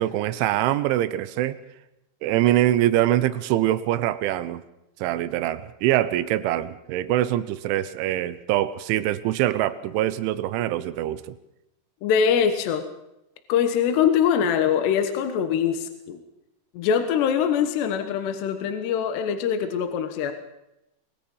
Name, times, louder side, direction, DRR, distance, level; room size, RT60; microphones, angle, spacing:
voice 1, 0.0-1.6 2.2-4.6 5.0-11.4, right 13 dB, 90° right, 13 dB, 3.3 m, -24 dB
voice 2, 12.0-12.8 13.5-16.2 16.7-20.3, left 8 dB, 70° left, 8 dB, 3.3 m, -23 dB
24.0 x 21.0 x 5.5 m, 0.88 s
omnidirectional pair, 5.3 m